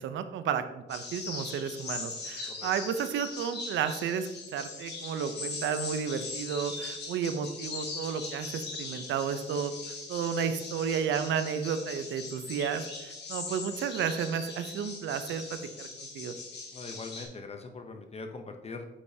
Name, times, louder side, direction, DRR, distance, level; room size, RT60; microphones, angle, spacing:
voice 1, 0.0-16.3, right 7 dB, 70° right, 10 dB, 0.6 m, -32 dB
sound 1, 0.9-17.2, left 4 dB, 60° left, 1.8 m, -40 dB
voice 2, 16.7-18.8, left 3 dB, 30° left, 5 dB, 0.7 m, -42 dB
8.1 x 5.4 x 2.7 m, 1.1 s
cardioid pair, 90°, 20 cm